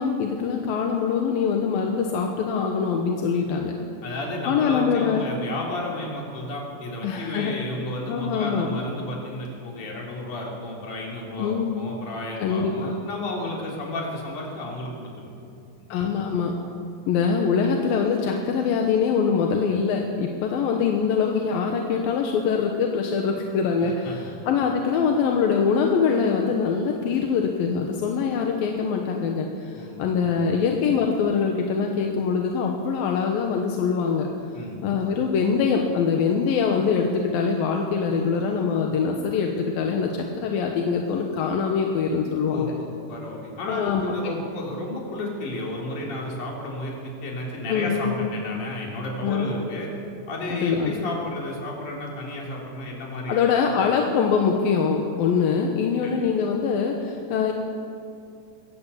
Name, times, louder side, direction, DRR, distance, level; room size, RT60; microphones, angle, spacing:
voice 1, 0.0-3.7 4.5-5.2 7.0-7.5 8.1-8.7 11.4-11.6 12.4-12.9 15.9-16.6 17.1-34.3 34.8-42.7 43.7-44.3 47.7-48.3 49.2-49.5 50.5-50.9 53.3-57.5, left 6 dB, 85° left, 2 dB, 3.0 m, -23 dB
voice 2, 4.0-15.3 15.8-15.9 23.8-24.2 29.7-30.1 30.4-30.6 34.5-34.8 42.5-49.9 50.3-53.5 56.0-56.3, left 1 dB, 60° left, -2 dB, 5.0 m, -32 dB
22.5 x 14.0 x 8.4 m, 2.5 s
omnidirectional pair, 4.0 m